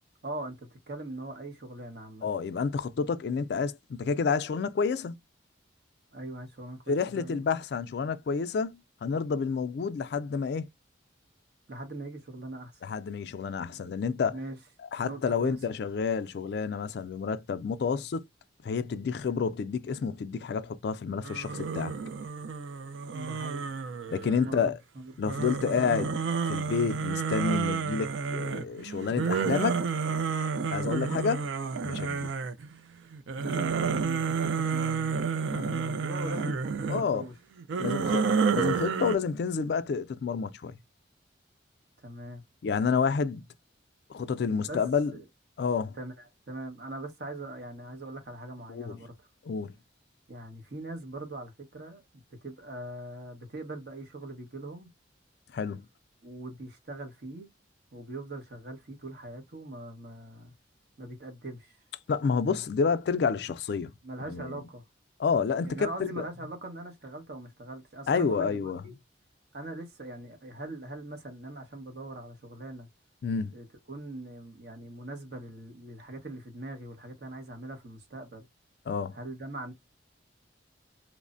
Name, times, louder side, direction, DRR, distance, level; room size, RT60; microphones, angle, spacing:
voice 1, 0.2-2.3 6.1-7.4 11.7-12.8 14.3-14.6 15.0-15.6 23.1-23.7 24.4-24.6 24.9-25.8 33.4-37.3 37.8-38.4 42.0-42.4 44.6-44.8 45.1-45.2 45.9-49.3 50.3-52.0 52.4-54.9 56.2-57.5 57.9-60.5 61.0-61.8 64.0-64.8 65.6-68.9 69.5-72.9 73.5-78.4 79.1-79.7, right 2 dB, 55° right, 1.0 m, -41 dB
voice 2, 2.2-5.2 6.9-10.7 12.8-14.4 14.9-18.3 18.6-21.9 24.1-24.8 25.2-29.8 30.7-31.5 31.8-32.3 35.5-35.9 36.9-37.2 37.8-38.2 38.5-40.8 42.6-43.5 44.1-45.2 45.6-46.0 48.7-49.0 49.4-49.7 55.5-55.9 62.1-63.9 64.2-64.6 65.2-66.3 68.1-68.8 73.2-73.5 78.9-79.2, left 5 dB, 60° left, 0.3 m, -29 dB
sound 1, 21.2-24.6 25.2-32.7 33.1-37.0 37.6-39.2, right 5 dB, 80° right, 0.4 m, -30 dB
3.1 x 2.0 x 2.5 m
head